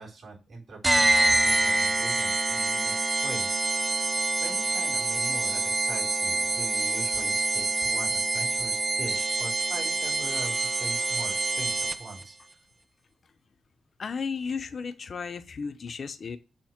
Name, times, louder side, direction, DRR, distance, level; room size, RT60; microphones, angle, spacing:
voice 1, 0.0-12.6, right 3 dB, 55° right, -7 dB, 3.8 m, -42 dB
sound 1, 0.8-12.2, right 2 dB, 15° right, 0.5 m, -26 dB
voice 2, 14.0-16.4, left 5 dB, 50° left, 9 dB, 0.6 m, -34 dB
7.1 x 2.8 x 5.8 m, 0.30 s
cardioid pair, 95°, 0 cm